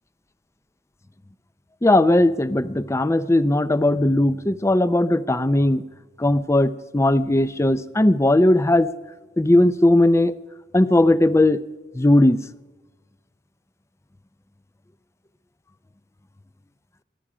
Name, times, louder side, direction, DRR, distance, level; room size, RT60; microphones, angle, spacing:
voice 1, 1.8-5.8 6.2-8.9 9.4-10.3 10.7-11.6 11.9-12.4, left 1 dB, 15° left, 15 dB, 0.5 m, -18 dB
24.5 x 9.9 x 5.0 m, 1.2 s
head